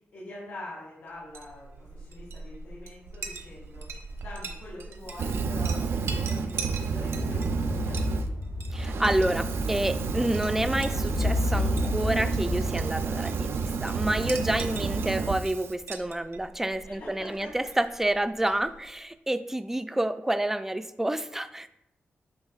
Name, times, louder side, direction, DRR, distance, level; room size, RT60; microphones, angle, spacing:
voice 1, 0.1-3.9 4.2-8.3 14.5-15.1 16.8-17.5, left 1 dB, 80° left, -6 dB, 2.1 m, -44 dB
Chink clink, 1.2-19.0, right 4 dB, 90° right, 0.9 m, -43 dB
Fire, 5.1-8.3 8.7-15.7, right 5 dB, 70° right, 0.5 m, -30 dB
cordar musica, 7.2-12.7, left 2 dB, 30° left, 0.6 m, -32 dB
voice 2, 8.7-21.8, right 1 dB, 10° right, 11 dB, 0.3 m, -29 dB
9.5 x 6.3 x 2.4 m, 0.83 s
wide cardioid pair, 155°, 4 cm